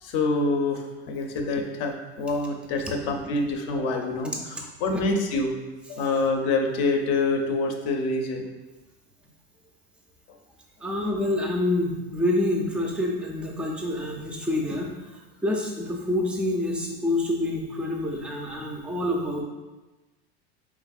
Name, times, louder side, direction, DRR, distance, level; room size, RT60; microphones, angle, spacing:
voice 1, 0.0-5.5 5.9-8.4, left 3 dB, 50° left, 3 dB, 0.7 m, -26 dB
voice 2, 10.8-15.2 15.4-19.4, left 1 dB, 5° right, -1 dB, 0.4 m, -27 dB
4.8 x 3.5 x 2.4 m, 1.1 s
supercardioid pair, 140°, 32 cm